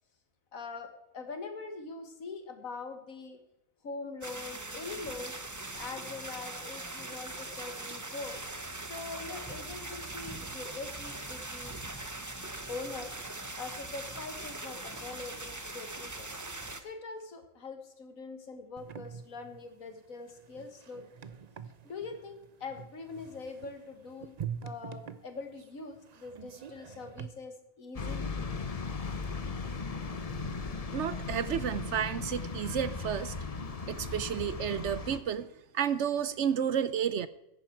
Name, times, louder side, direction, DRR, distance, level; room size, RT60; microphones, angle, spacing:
voice 1, 0.5-3.4 3.8-5.4 5.8-8.4 8.9-11.9 12.7-13.1 13.6-16.4 16.8-21.1 21.8-24.4 24.6-28.3 31.2-31.4, left 4 dB, 75° left, 7 dB, 2.0 m, -43 dB
sound 1, 4.2-16.8, right 2 dB, 15° right, 0.9 m, -41 dB
sound 2, 18.8-27.3, right 8 dB, 45° right, 0.5 m, -45 dB
sound 3, 27.9-35.2, left 4 dB, 35° left, 0.8 m, -37 dB
voice 2, 30.9-33.3 33.9-35.5 35.7-37.3, right 8 dB, 65° right, 15 dB, 0.9 m, -31 dB
15.0 x 10.5 x 4.6 m, 0.86 s
omnidirectional pair, 1.4 m